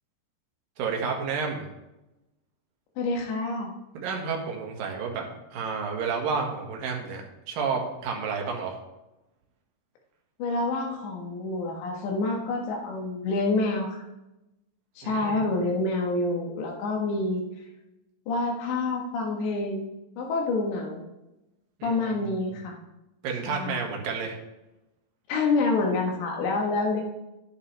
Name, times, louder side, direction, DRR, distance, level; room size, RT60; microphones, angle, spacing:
voice 1, 0.8-1.7 3.9-5.2 5.5-8.8 15.0-15.4 21.8-22.0 23.2-24.3, right 5 dB, 65° right, 1 dB, 3.0 m, -30 dB
voice 2, 3.0-3.8 10.4-14.1 15.0-17.4 18.3-19.9 20.2-21.0 21.8-22.8 23.5-23.9 25.3-27.0, left 3 dB, 90° left, 1 dB, 3.8 m, -27 dB
11.0 x 10.0 x 3.4 m, 0.97 s
omnidirectional pair, 4.9 m